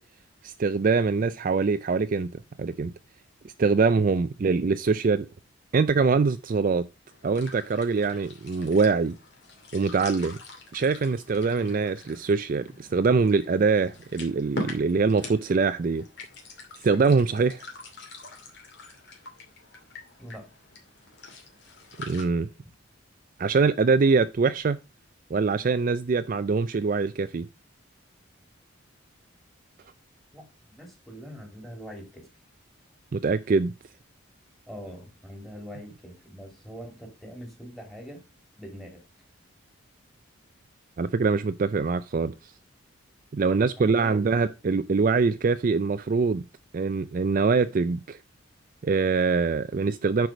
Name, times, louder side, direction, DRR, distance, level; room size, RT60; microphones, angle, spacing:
voice 1, 0.4-2.3 2.6-2.9 3.4-5.3 5.7-6.9 7.2-9.2 9.7-10.4 10.7-16.0 16.8-17.6 22.1-22.5 23.4-24.8 25.3-27.5 33.1-33.7 41.0-42.5 43.3-46.4 46.7-48.2 48.8-50.3, right 4 dB, 40° right, 0.4 m, -23 dB
sound 1, 7.1-22.2, left 2 dB, 55° left, 2.5 m, -44 dB
voice 2, 30.8-32.3 34.7-38.2 38.6-39.0 43.8-44.4, equal, ahead, 2.6 m, -43 dB
9.1 x 4.8 x 4.9 m
head